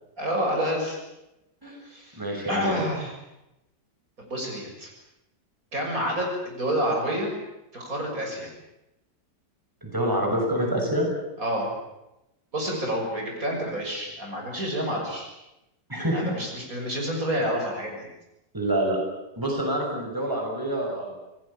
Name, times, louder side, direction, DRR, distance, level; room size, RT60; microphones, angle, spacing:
voice 1, 0.2-1.0 1.9-2.2 2.5-3.1 4.2-4.9 5.7-7.3 7.7-8.5 11.4-11.7 12.5-15.3 16.1-18.1, equal, 50° right, 1 dB, 7.0 m, -28 dB
voice 2, 2.2-2.7 9.8-11.1 15.9-16.3 18.5-19.0 19.4-21.1, right 1 dB, 10° right, 0 dB, 6.2 m, -26 dB
28.0 x 19.0 x 8.7 m, 0.92 s
omnidirectional pair, 1.8 m